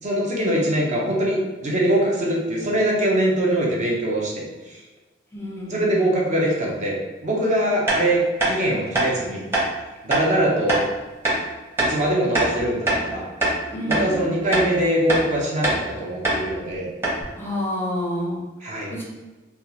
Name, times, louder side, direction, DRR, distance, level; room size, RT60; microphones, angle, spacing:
voice 1, 0.0-4.4 5.7-9.4 10.0-10.8 11.9-13.3 13.9-16.9 18.6-18.9, right 1 dB, 40° right, -3 dB, 0.6 m, -22 dB
voice 2, 5.3-6.0 13.7-14.4 17.3-18.4 18.9-19.0, equal, 10° left, -4 dB, 0.6 m, -28 dB
sound 1, 7.9-8.0 8.4-8.5 8.9-9.1 9.5-9.7 10.1-10.3 10.7-10.8 11.2-11.4 11.8-11.9 12.3-13.1 13.4-13.6 13.9-14.1 14.5-14.7 15.1-15.2 15.6-15.8 16.2-16.4 16.7-16.8 17.0-17.2, right 1 dB, 15° right, 0.8 m, -22 dB
3.4 x 2.4 x 2.8 m, 1.2 s
head